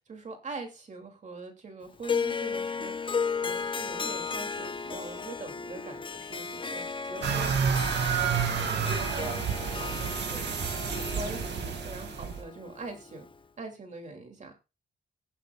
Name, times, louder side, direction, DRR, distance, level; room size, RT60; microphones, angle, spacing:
voice 1, 0.0-10.6 11.1-13.3 13.6-14.7, right 3 dB, 40° right, 4 dB, 2.8 m, -43 dB
Harp, 2.0-13.3, left 5 dB, 25° left, 0.6 m, -35 dB
sound 1, 7.2-12.4, right 7 dB, 75° right, 2.2 m, -30 dB
16.0 x 11.5 x 2.4 m, 0.29 s
wide cardioid pair, 140°, 18 cm